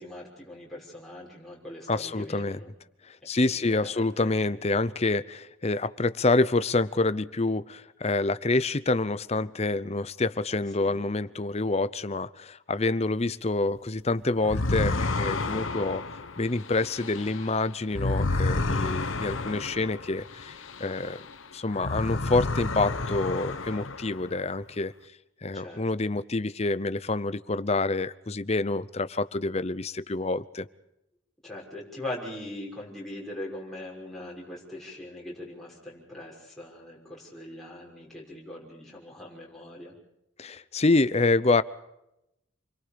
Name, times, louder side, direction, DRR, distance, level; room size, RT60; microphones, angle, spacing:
voice 1, 0.0-2.7 3.4-4.5 10.8-11.0 25.5-25.8 31.4-39.9, left 1 dB, ahead, -5 dB, 6.1 m, -41 dB
voice 2, 1.9-2.6 3.1-16.0 16.4-21.3 21.5-24.9 25.4-30.7 40.4-41.6, left 2 dB, 30° left, 15 dB, 0.7 m, -27 dB
sound 1, 14.4-21.3 21.7-24.4, left 2 dB, 85° left, 1.3 m, -30 dB
28.0 x 22.5 x 5.2 m, 0.85 s
head